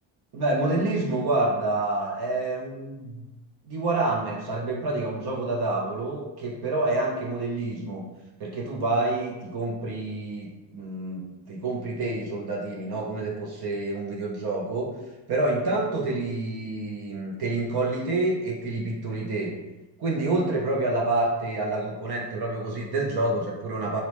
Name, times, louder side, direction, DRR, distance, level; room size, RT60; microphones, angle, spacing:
voice 1, 0.3-3.2 3.7-8.0 8.4-10.5 10.7-14.9 15.3-19.5 20.0-24.0, right 2 dB, 50° right, -1 dB, 0.6 m, -28 dB
2.7 x 2.1 x 3.0 m, 1.1 s
cardioid pair, 85°, 49 cm